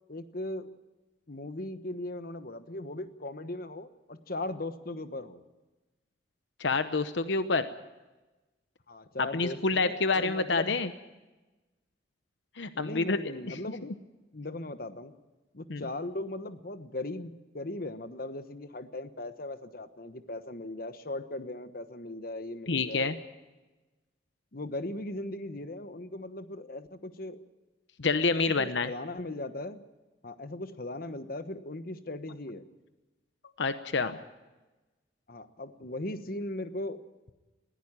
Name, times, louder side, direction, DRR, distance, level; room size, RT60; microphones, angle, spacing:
voice 1, 0.1-0.7 1.3-5.4 8.9-10.8 12.7-13.9 14.3-15.1 15.5-23.2 24.5-27.4 28.3-29.8 30.2-32.6 35.3-37.0, left 2 dB, 50° left, 10 dB, 1.2 m, -38 dB
voice 2, 6.6-7.7 9.3-10.9 12.6-13.2 13.5-13.6 15.7-15.8 22.7-23.2 28.0-28.9 33.6-34.2, left 3 dB, 75° left, 10 dB, 0.9 m, -28 dB
20.5 x 15.5 x 8.9 m, 1.1 s
head